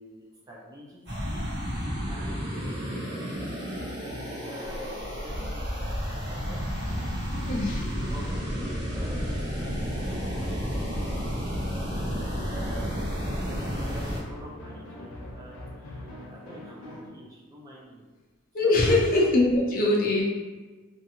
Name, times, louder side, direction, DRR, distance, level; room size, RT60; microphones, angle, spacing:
voice 1, 0.0-1.4 2.0-3.9 4.4-7.3 7.8-12.1 12.5-13.1 13.4-18.0 18.6-19.1, right 1 dB, 15° right, -5 dB, 0.4 m, -47 dB
sound 1, 1.1-14.2, equal, 50° right, 1.0 m, -32 dB
sound 2, 1.4-17.1, left 1 dB, 90° left, 0.6 m, -43 dB
voice 2, 7.5-7.9 18.5-20.2, left 2 dB, 40° left, -3 dB, 0.5 m, -22 dB
2.6 x 2.5 x 2.7 m, 1.3 s
head